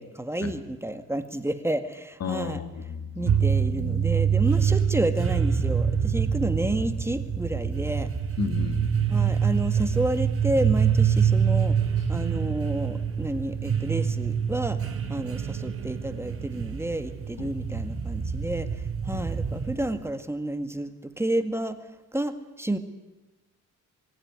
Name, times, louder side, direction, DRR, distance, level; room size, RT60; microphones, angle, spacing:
voice 1, 0.0-2.6 3.1-8.1 9.1-11.8 12.1-14.8 15.1-21.8 22.1-22.8, right 1 dB, 10° right, 8 dB, 1.9 m, -30 dB
voice 2, 2.2-3.4 8.4-9.2 17.4-17.5 19.1-19.3, left 5 dB, 55° left, 8 dB, 2.6 m, -33 dB
sound 1, 3.3-20.1, right 7 dB, 45° right, 2.9 m, -26 dB
22.0 x 16.5 x 9.6 m, 1.1 s
cardioid pair, 90°, 30 cm